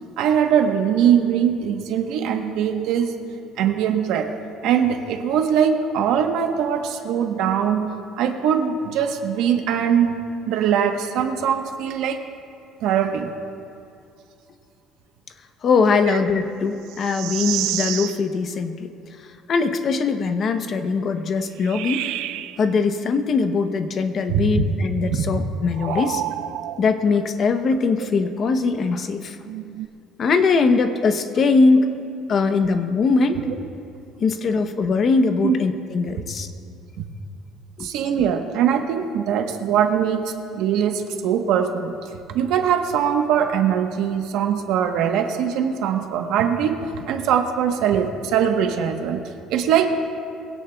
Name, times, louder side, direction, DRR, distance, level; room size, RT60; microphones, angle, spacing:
voice 1, 0.2-3.1 3.6-4.3 4.6-7.9 8.2-10.2 10.5-12.2 12.8-13.3 16.1-16.2 24.3-24.6 25.1-25.3 33.4-33.5 35.4-35.5 37.0-37.1 37.8-41.9 42.3-49.2 49.5-49.9, right 8 dB, 65° right, 5 dB, 1.0 m, -21 dB
voice 2, 15.6-18.9 19.2-22.1 22.6-26.2 26.8-29.4 30.2-31.9 32.2-33.4 34.2-36.5 37.8-37.9, left 4 dB, 30° left, 8 dB, 0.7 m, -21 dB
sound 1, 16.9-18.2 21.6-22.6 25.7-26.9 29.4-29.9, right 13 dB, 85° right, 0.4 m, -29 dB
22.5 x 17.0 x 2.3 m, 2.5 s
cardioid pair, 175°, 0 cm